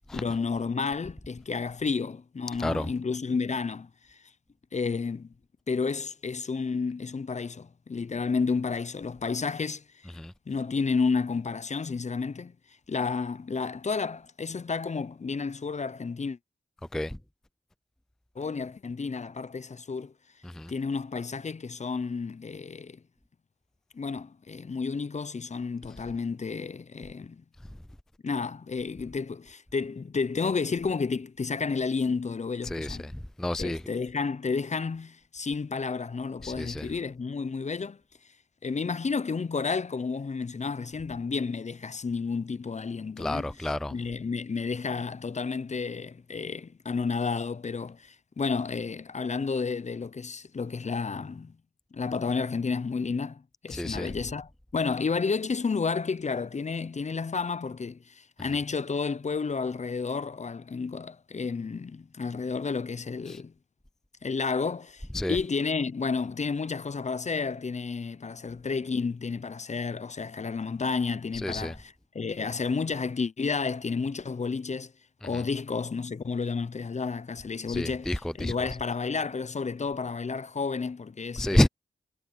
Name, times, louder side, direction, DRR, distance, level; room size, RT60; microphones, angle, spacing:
voice 1, 0.1-4.2 4.7-5.3 5.7-9.8 10.5-12.5 12.9-16.4 18.4-20.1 20.7-23.0 23.9-27.4 28.2-33.1 33.6-38.0 38.6-43.5 43.9-51.5 51.9-63.5 64.2-74.9 75.2-78.1 78.4-81.6, left 4 dB, 40° left, 0.6 m, -31 dB
voice 2, 2.6-2.9 10.1-10.3 16.9-17.2 20.4-20.7 32.6-33.1 33.4-33.8 36.4-36.9 43.2-43.9 53.7-54.1 63.3-63.4 65.1-65.4 71.3-71.7 75.2-75.4 77.7-78.5 81.4-81.7, left 1 dB, 5° left, 0.4 m, -29 dB
cardioid pair, 60°, 17 cm